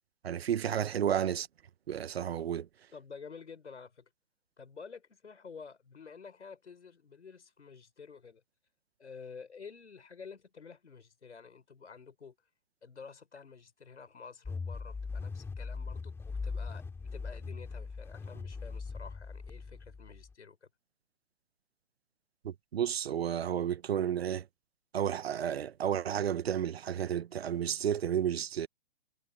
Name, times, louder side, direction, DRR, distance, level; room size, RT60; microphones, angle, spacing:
voice 1, 0.2-1.5 1.9-2.7 22.4-24.4 24.9-28.7, right 9 dB, 65° right, 1.3 m, -32 dB
voice 2, 2.9-4.1 4.6-8.4 9.0-12.4 12.8-20.6, left 5 dB, 85° left, 5.6 m, -50 dB
sound 1, 14.5-20.3, left 4 dB, 5° left, 2.4 m, -40 dB
hypercardioid pair, 135°, 34 cm